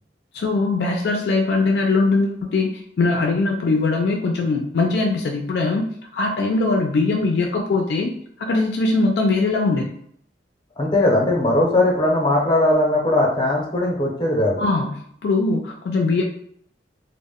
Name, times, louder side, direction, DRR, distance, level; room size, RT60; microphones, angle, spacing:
voice 1, 0.3-5.9 6.1-9.9 14.6-14.9 15.2-16.2, left 3 dB, 65° left, 1 dB, 0.3 m, -21 dB
voice 2, 10.8-14.6, left 1 dB, 25° left, -2 dB, 0.6 m, -19 dB
2.1 x 2.0 x 3.5 m, 0.66 s
head